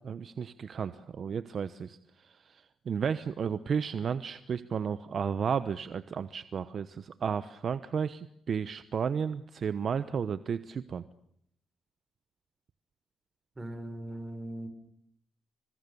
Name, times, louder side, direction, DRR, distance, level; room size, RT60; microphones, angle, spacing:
voice 1, 0.0-2.0 2.2-11.0, right 7 dB, 50° right, 13 dB, 1.0 m, -33 dB
voice 2, 13.6-14.7, right 1 dB, 20° right, 8 dB, 6.3 m, -39 dB
27.5 x 25.5 x 7.0 m, 0.70 s
cardioid pair, 105°, 0 cm